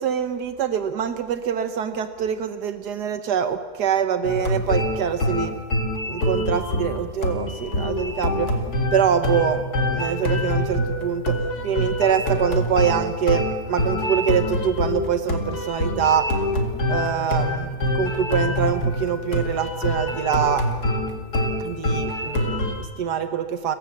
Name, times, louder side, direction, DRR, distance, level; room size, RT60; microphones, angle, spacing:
voice 1, 0.0-5.6 6.0-8.5 8.9-11.4 11.6-16.3 16.9-20.7 21.6-23.8, right 8 dB, 80° right, 9 dB, 1.6 m, -24 dB
sound 1, 4.2-22.8, left 1 dB, 70° left, 2.7 m, -25 dB
28.5 x 15.5 x 7.4 m, 1.5 s
omnidirectional pair, 1.7 m